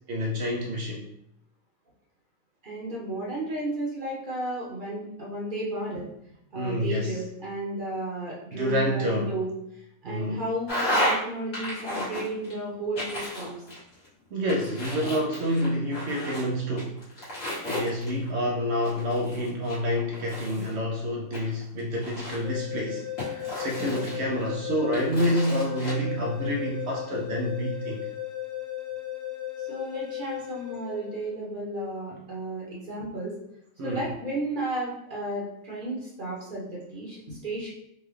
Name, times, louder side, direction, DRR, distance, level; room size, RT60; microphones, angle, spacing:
voice 1, 0.1-1.1 6.5-7.2 8.5-9.3 10.0-10.4 14.3-17.0 17.7-28.1 33.8-34.0, equal, 65° right, -1 dB, 0.7 m, -28 dB
voice 2, 2.6-6.1 6.5-13.6 29.7-33.4 33.8-37.7, right 1 dB, 40° right, -5 dB, 1.0 m, -33 dB
sound 1, 10.7-11.2 11.5-12.5 13.0-14.1 14.5-16.4 16.8-18.3 18.8-20.7 21.3-22.6 23.2-24.5 24.9-25.9, equal, 60° left, 1.6 m, -32 dB
sound 2, 22.4-31.4, left 13 dB, 25° left, 0.3 m, -36 dB
4.0 x 2.3 x 3.1 m, 0.76 s
omnidirectional pair, 1.5 m